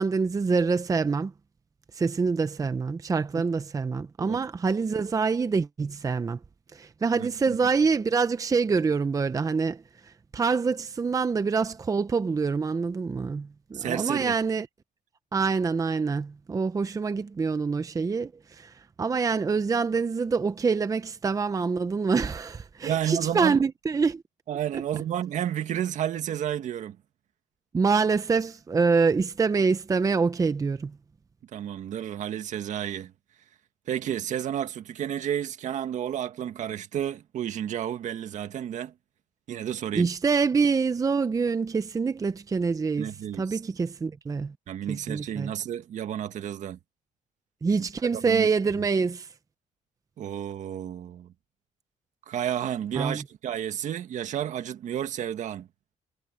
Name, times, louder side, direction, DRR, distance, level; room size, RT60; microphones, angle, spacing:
voice 1, 0.0-1.3 1.9-6.4 6.7-9.8 10.3-14.7 15.3-24.2 27.7-30.9 39.9-43.1 43.4-44.5 44.9-45.5 47.6-49.3 53.0-53.2, right 5 dB, 25° right, 0.7 m, -26 dB
voice 2, 7.2-7.6 13.7-14.4 22.8-23.6 24.5-27.0 31.4-33.1 33.9-38.9 39.5-40.1 43.0-43.6 44.7-46.8 47.8-47.9 48.1-48.5 48.8-48.9 50.2-51.3 52.3-55.7, right 10 dB, 65° right, 1.8 m, -31 dB
cardioid pair, 110°, 13 cm